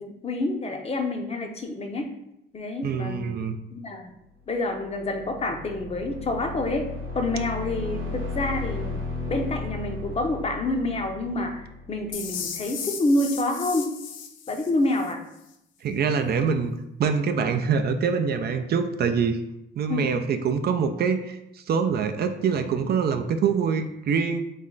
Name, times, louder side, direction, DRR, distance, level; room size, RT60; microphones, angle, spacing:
voice 1, 0.0-2.1 2.5-3.4 3.7-4.1 4.5-6.9 7.1-13.9 14.5-15.2 19.9-20.2, left 2 dB, 30° left, 4 dB, 0.6 m, -28 dB
voice 2, 2.8-3.6 15.8-16.7 17.0-19.4 19.8-24.4, right 6 dB, 55° right, 7 dB, 0.4 m, -25 dB
sound 1, 4.6-12.4, left 3 dB, 85° right, 0.9 m, -35 dB
sound 2, 12.1-15.1, left 7 dB, 80° left, 0.5 m, -36 dB
3.2 x 3.1 x 3.8 m, 0.83 s
cardioid pair, 90°, 20 cm